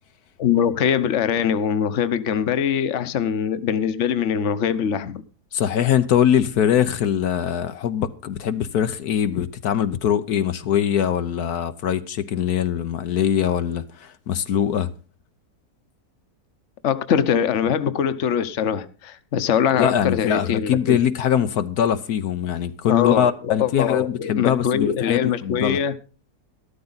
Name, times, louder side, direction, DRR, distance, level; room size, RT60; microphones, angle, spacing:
voice 1, 0.4-5.2 16.8-21.0 22.9-25.9, left 8 dB, 55° left, 1.2 m, -22 dB
voice 2, 5.5-14.9 19.8-25.8, left 9 dB, 75° left, 1.3 m, -22 dB
13.5 x 13.0 x 4.0 m
omnidirectional pair, 1.7 m